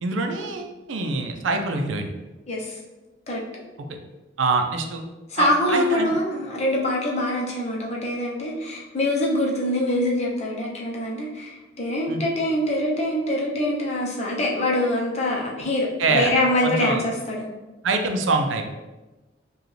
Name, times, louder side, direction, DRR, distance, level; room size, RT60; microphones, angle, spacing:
voice 1, 0.0-2.1 4.4-5.0 5.4-6.1 12.1-12.2 16.0-16.3 16.6-17.0 17.8-18.6, right 3 dB, 90° right, 5 dB, 0.5 m, -24 dB
voice 2, 2.5-2.8 3.3-3.4 5.3-17.5, left 1 dB, 35° left, -2 dB, 0.7 m, -24 dB
4.8 x 2.3 x 3.2 m, 1.1 s
head